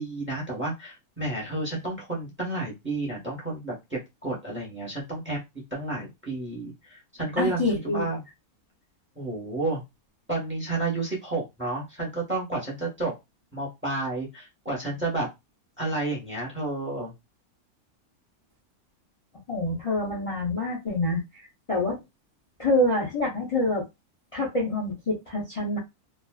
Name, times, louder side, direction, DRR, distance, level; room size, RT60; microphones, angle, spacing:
voice 1, 0.0-5.4 5.7-8.2 9.2-9.8 10.3-13.1 13.5-15.3 15.8-17.1, right 2 dB, 10° right, -2 dB, 0.9 m, -31 dB
voice 2, 7.4-8.1 19.5-22.0 22.6-23.8 24.3-25.8, left 1 dB, 50° left, -4 dB, 0.3 m, -26 dB
2.4 x 2.3 x 2.3 m, 0.21 s
omnidirectional pair, 1.6 m